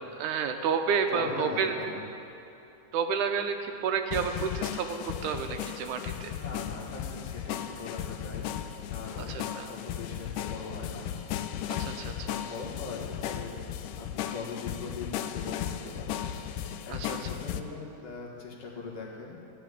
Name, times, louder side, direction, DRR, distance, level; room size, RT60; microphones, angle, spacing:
voice 1, 0.2-1.7 2.9-6.3 9.2-9.7 11.7-12.3 16.9-17.2, right 6 dB, 80° right, 5 dB, 2.2 m, -30 dB
voice 2, 1.1-2.0 6.3-8.5 8.8-11.1 12.3-13.5 14.0-16.3 16.8-19.4, left 4 dB, 50° left, -4 dB, 2.5 m, -40 dB
sound 1, 4.1-17.6, left 10 dB, 85° left, 2.1 m, -36 dB
14.5 x 5.9 x 10.0 m, 2.8 s
omnidirectional pair, 3.6 m